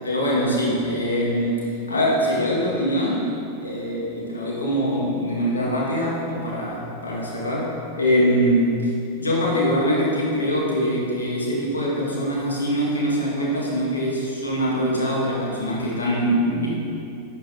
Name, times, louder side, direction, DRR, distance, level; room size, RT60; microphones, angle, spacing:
voice 1, 0.0-3.3 3.6-7.6 8.0-8.9 9.2-16.7, equal, 75° left, -4 dB, 2.1 m, -23 dB
12.0 x 6.6 x 4.0 m, 2.6 s
figure-of-eight pair, 90°, 0 cm